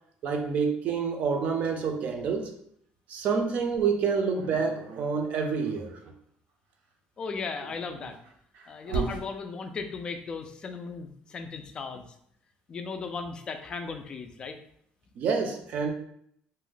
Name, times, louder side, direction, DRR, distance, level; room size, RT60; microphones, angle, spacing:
voice 1, 0.2-2.5 3.1-6.1 15.2-15.9, right 5 dB, 50° right, 4 dB, 0.5 m, -28 dB
Dog, 4.3-5.9 7.4-9.3, right 4 dB, 90° right, 0.6 m, -36 dB
voice 2, 7.2-8.2 8.7-12.1 12.7-14.6, left 4 dB, 25° left, 6 dB, 0.3 m, -36 dB
2.6 x 2.1 x 3.8 m, 0.69 s
cardioid pair, 160°, 3 cm